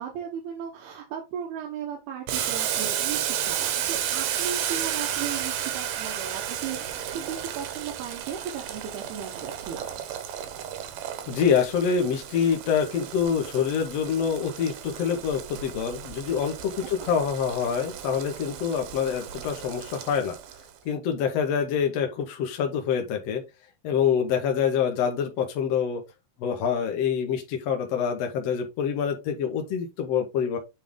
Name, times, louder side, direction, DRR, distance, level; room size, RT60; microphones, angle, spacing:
voice 1, 0.0-10.0 16.8-17.1, right 8 dB, 90° right, 3.3 m, -36 dB
Boiling, 2.3-20.7, right 10 dB, 70° right, 2.4 m, -33 dB
voice 2, 11.3-20.3 20.8-23.4 23.8-26.0 26.4-30.6, left 7 dB, 70° left, 1.5 m, -26 dB
9.0 x 3.4 x 3.7 m
omnidirectional pair, 4.4 m